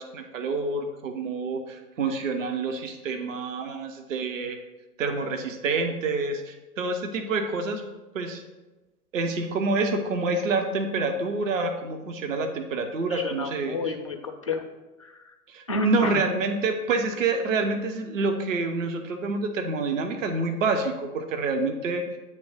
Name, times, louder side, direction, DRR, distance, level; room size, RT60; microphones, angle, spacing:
voice 1, 0.0-4.6 5.0-7.8 8.1-8.4 9.1-13.8 15.5-22.2, right 3 dB, 55° right, 5 dB, 0.9 m, -27 dB
voice 2, 13.1-14.6 15.0-15.4 15.7-16.3, left 3 dB, 25° left, 3 dB, 0.3 m, -31 dB
8.7 x 3.3 x 6.1 m, 1.1 s
figure-of-eight pair, 110°, 46 cm